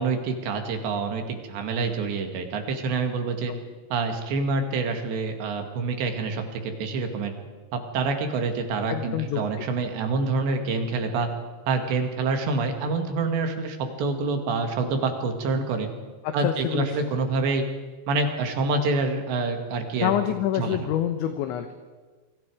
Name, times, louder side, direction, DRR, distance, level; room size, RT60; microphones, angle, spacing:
voice 1, 0.0-3.5 3.9-7.3 7.7-11.3 11.7-15.9 16.3-17.6 18.1-20.1 20.6-20.9, right 3 dB, 65° right, 5 dB, 4.0 m, -27 dB
voice 2, 8.9-9.7 16.2-17.0 20.0-21.8, left 11 dB, 75° left, 7 dB, 3.1 m, -27 dB
28.0 x 23.0 x 4.9 m, 1.4 s
omnidirectional pair, 5.9 m